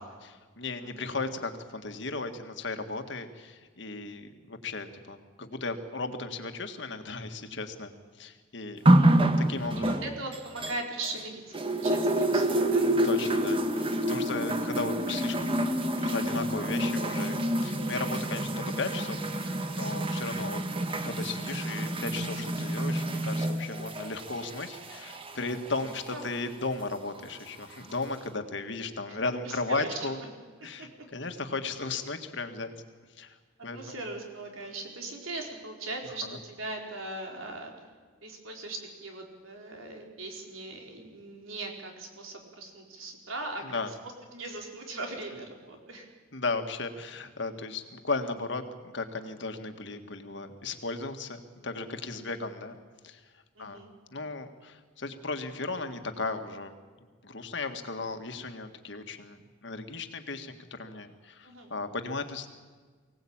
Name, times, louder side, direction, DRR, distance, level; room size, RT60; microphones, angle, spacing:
voice 1, 0.0-7.9 8.2-8.8 9.4-10.1 13.0-15.5 16.0-20.6 21.0-30.2 30.6-32.7 33.2-33.4 33.6-34.0 36.2-36.4 43.6-43.9 46.3-52.8 53.0-53.2 53.6-53.8 54.1-56.7 57.2-62.5, left 3 dB, 60° left, 7 dB, 1.8 m, -36 dB
voice 2, 8.8-9.1 9.8-11.4 11.7-12.9 25.9-26.3 29.1-29.2 29.4-29.9 30.6-30.9 33.7-37.7 38.2-43.9 44.3-46.1 52.2-52.4 53.6-53.9 61.4-61.7, right 2 dB, 90° right, 2 dB, 4.2 m, -39 dB
sound 1, 8.9-11.2 11.5-26.3 27.2-27.3, right 1 dB, 25° right, 1.3 m, -28 dB
23.5 x 17.5 x 8.8 m, 1.5 s
head